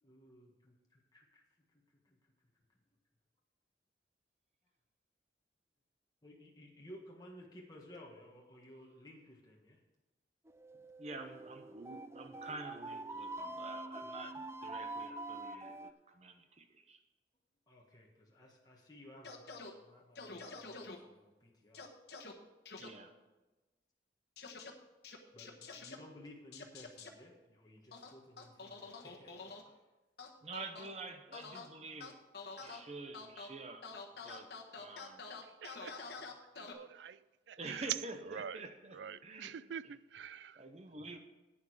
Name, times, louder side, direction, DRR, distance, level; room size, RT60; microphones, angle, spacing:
voice 1, 0.0-1.4 1.7-1.8 2.1-2.2 6.2-9.8 17.7-21.9 25.3-29.5, left 1 dB, 20° left, 1.5 m, -56 dB
sound 1, 10.5-15.9, right 2 dB, 15° right, 0.4 m, -45 dB
voice 2, 11.0-17.0 22.8-23.1 30.4-32.2 32.6-34.0 34.2-34.5 34.7-35.2 37.6-39.6 39.8-40.0 40.5-41.2, right 3 dB, 40° right, 0.9 m, -48 dB
sound 2, 19.2-19.7 20.2-21.0 21.7-22.3 22.7-22.9 24.4-24.7 25.0-26.0 26.5-27.1 27.9-29.6 30.2-30.9 31.3-31.7 32.0-32.8 33.1-33.5 33.8-36.7, left 4 dB, 65° left, 1.3 m, -47 dB
voice 3, 35.6-36.2 36.7-37.2 37.5-37.8 38.3-38.6 39.0-40.5, right 7 dB, 80° right, 0.4 m, -46 dB
11.0 x 9.1 x 4.9 m
head